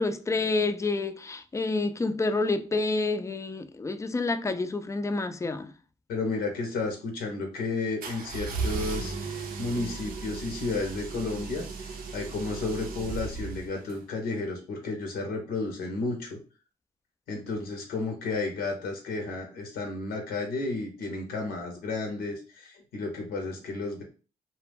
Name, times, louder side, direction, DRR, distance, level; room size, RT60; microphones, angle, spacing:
voice 1, 0.0-5.7, left 3 dB, 20° left, 0.3 m, -28 dB
voice 2, 6.1-11.6 12.1-16.4 17.3-24.0, left 3 dB, 85° left, 0.7 m, -32 dB
sound 1, 8.0-14.0, right 4 dB, 70° right, 0.5 m, -36 dB
2.1 x 2.1 x 3.3 m
supercardioid pair, 55°, 16 cm